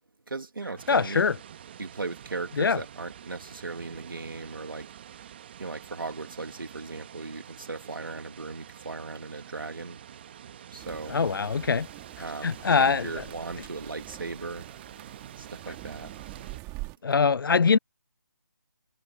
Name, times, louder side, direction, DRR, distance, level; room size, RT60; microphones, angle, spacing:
voice 1, 0.3-1.3 1.8-4.9 5.6-10.0 10.7-11.2 12.2-14.7 15.4-16.1, right 3 dB, 80° right, 2.7 m, -37 dB
sound 1, 0.8-16.6, right 9 dB, 30° right, 1.5 m, -47 dB
voice 2, 0.9-1.4 2.6-2.8 11.1-11.9 12.4-13.2 17.0-17.8, left 5 dB, 80° left, 0.4 m, -23 dB
sound 2, 10.8-17.0, right 25 dB, 15° right, 2.0 m, -45 dB
figure-of-eight pair, 160°, 11 cm